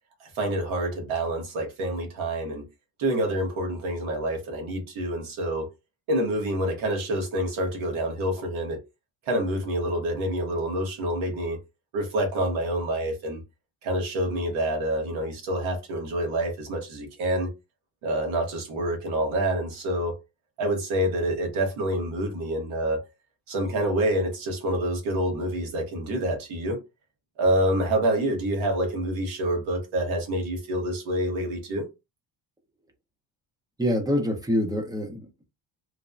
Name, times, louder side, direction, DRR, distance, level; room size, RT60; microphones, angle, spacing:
voice 1, 0.2-2.7 3.0-5.7 6.1-8.8 9.3-11.6 11.9-13.4 13.8-17.5 18.0-20.2 20.6-23.0 23.5-26.8 27.4-31.9, right 1 dB, 90° right, 1.2 m, -27 dB
voice 2, 33.8-35.5, left 1 dB, 10° right, 0.5 m, -26 dB
3.1 x 2.1 x 2.4 m
cardioid pair, 140°, 47 cm